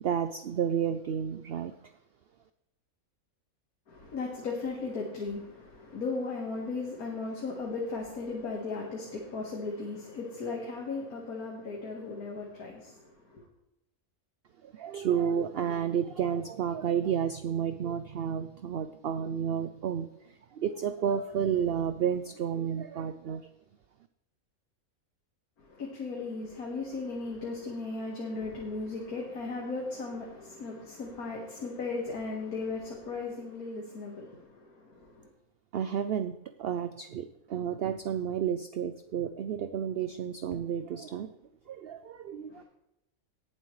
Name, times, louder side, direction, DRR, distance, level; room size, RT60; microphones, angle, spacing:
voice 1, 0.0-1.7 14.6-20.1 20.5-23.5 35.7-41.3 41.7-42.6, right 8 dB, 65° right, 11 dB, 0.6 m, -31 dB
voice 2, 3.9-13.4 25.7-35.3 42.5-42.6, left 3 dB, 85° left, -1 dB, 2.1 m, -36 dB
18.5 x 7.5 x 3.2 m, 0.91 s
omnidirectional pair, 1.5 m